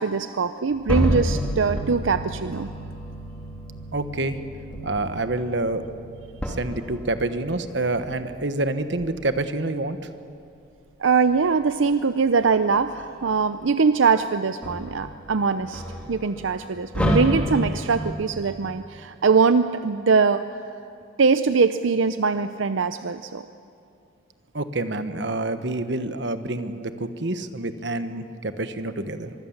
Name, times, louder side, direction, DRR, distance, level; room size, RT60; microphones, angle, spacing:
voice 1, 0.0-2.7 11.0-20.4 21.2-23.4, right 5 dB, 85° right, 11 dB, 0.6 m, -22 dB
sound 1, 0.7-8.5 9.0-9.2 11.0-11.8 12.4-14.0 14.3-18.4, equal, 5° left, 3.3 m, -30 dB
voice 2, 3.9-4.4 4.8-5.8 6.5-10.0 24.5-29.3, right 2 dB, 65° right, 10 dB, 1.2 m, -27 dB
24.5 x 23.5 x 7.3 m, 2.6 s
head